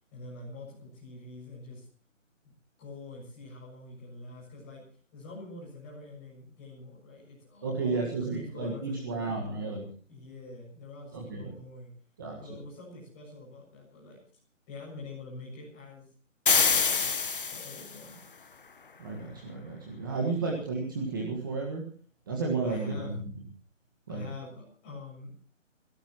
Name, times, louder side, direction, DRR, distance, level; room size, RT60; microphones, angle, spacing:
voice 1, 0.1-1.9 2.4-2.5 2.8-4.8 5.1-9.4 10.1-11.9 12.4-14.2 14.7-16.1 16.5-18.2 20.3-20.6 22.6-23.1 24.1-25.3, left 2 dB, 10° left, -4 dB, 7.0 m, -45 dB
voice 2, 7.6-9.8 11.1-11.5 12.2-12.6 19.0-21.8 22.3-23.2 24.1-24.3, right 3 dB, 15° right, 0 dB, 1.6 m, -32 dB
sound 1, 16.5-18.0, left 5 dB, 45° left, 1.2 m, -25 dB
27.5 x 17.5 x 3.0 m, 0.40 s
hypercardioid pair, 175°, 39 cm